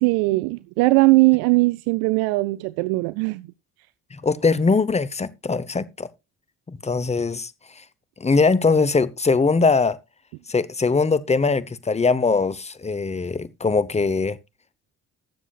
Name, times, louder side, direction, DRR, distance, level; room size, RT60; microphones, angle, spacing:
voice 1, 0.0-3.5, right 23 dB, 80° right, 0.5 m, -19 dB
voice 2, 4.1-6.1 6.7-7.5 8.2-10.0 10.5-14.4, left 4 dB, 15° left, 0.8 m, -21 dB
19.5 x 7.3 x 2.4 m
hypercardioid pair, 50°, 39 cm